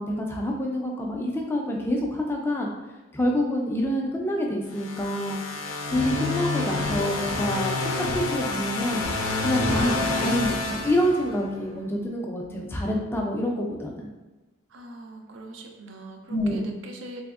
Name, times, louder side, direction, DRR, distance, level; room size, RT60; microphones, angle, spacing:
voice 1, 0.0-2.7 3.1-5.4 5.9-9.0 9.4-14.1 16.3-16.7, equal, 10° left, 0 dB, 0.4 m, -27 dB
sound 1, 4.7-11.6, left 3 dB, 85° left, 0.4 m, -28 dB
voice 2, 14.7-17.2, right 1 dB, 65° right, 4 dB, 0.4 m, -42 dB
3.4 x 2.9 x 2.4 m, 1.1 s
head